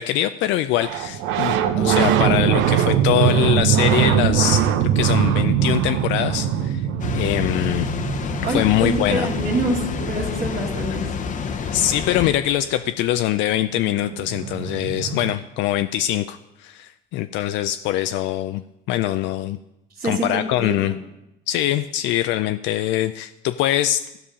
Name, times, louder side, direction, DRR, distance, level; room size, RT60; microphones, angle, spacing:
voice 1, 0.0-4.7 4.9-6.9 7.1-7.9 8.5-9.3 10.9-11.0 11.7-18.6 18.9-19.6 20.0-20.9 21.5-24.0, left 13 dB, 75° left, 10 dB, 0.4 m, -23 dB
sound 1, 0.8-11.2 13.3-13.4 13.5-15.3, right 9 dB, 85° right, 0.7 m, -22 dB
Water, 7.0-12.3, left 6 dB, 40° left, 0.8 m, -28 dB
voice 2, 8.4-11.1 20.0-21.0, right 2 dB, 40° right, -6 dB, 1.9 m, -26 dB
15.0 x 5.5 x 5.0 m, 0.89 s
cardioid pair, 110°, 19 cm